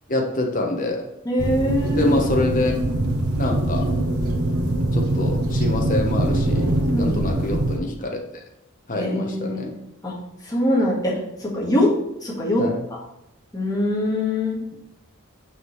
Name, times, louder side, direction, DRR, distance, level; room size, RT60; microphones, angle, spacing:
voice 1, 0.1-1.1 2.0-2.8 3.4-3.9 4.9-6.7 7.0-8.2 8.9-9.7 12.6-12.8, left 2 dB, 35° left, 2 dB, 1.0 m, -25 dB
voice 2, 1.2-2.1 6.9-7.2 8.9-9.7 10.0-10.1 10.4-11.1 11.4-11.9 12.2-12.6 12.9-13.0 13.5-14.6, left 1 dB, 15° left, -5 dB, 1.6 m, -23 dB
sound 1, 1.4-7.8, right 1 dB, 85° right, 1.0 m, -23 dB
6.2 x 6.0 x 3.2 m, 0.84 s
head